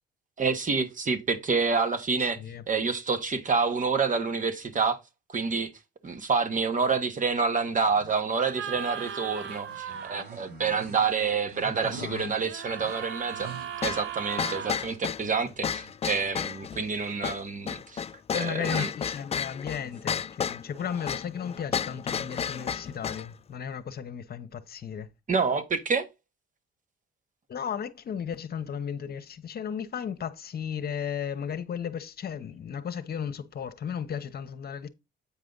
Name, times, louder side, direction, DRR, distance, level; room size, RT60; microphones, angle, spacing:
voice 1, 0.4-2.4 2.7-5.0 5.3-5.7 6.0-13.5 13.8-18.0 18.4-18.9 25.3-26.1, right 5 dB, 40° right, 1.3 m, -28 dB
voice 2, 2.2-2.7 11.6-12.5 18.3-25.1 27.5-34.9, left 8 dB, 50° left, 1.0 m, -35 dB
sound 1, 7.8-13.9, right 4 dB, 55° right, 3.4 m, -47 dB
sound 2, 8.4-10.2 12.4-14.8 18.5-18.9, right 8 dB, 75° right, 0.9 m, -37 dB
sound 3, 13.8-23.3, left 7 dB, 30° left, 0.4 m, -32 dB
8.6 x 5.0 x 3.9 m
cardioid pair, 90°, 20 cm